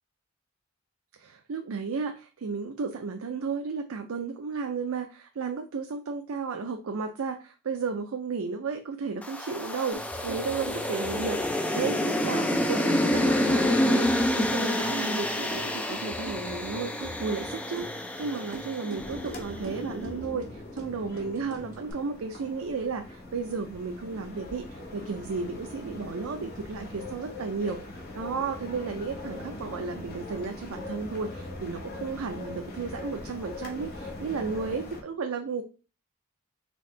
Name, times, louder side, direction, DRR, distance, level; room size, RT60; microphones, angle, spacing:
voice 1, 1.2-35.6, right 5 dB, 75° right, 5 dB, 0.4 m, -33 dB
sound 1, 9.2-19.6, left 1 dB, 5° left, 0.3 m, -28 dB
sound 2, 9.9-21.9, right 2 dB, 35° right, 1.3 m, -44 dB
sound 3, 19.0-35.0, left 1 dB, 45° left, 0.9 m, -41 dB
4.1 x 3.5 x 3.2 m, 0.34 s
head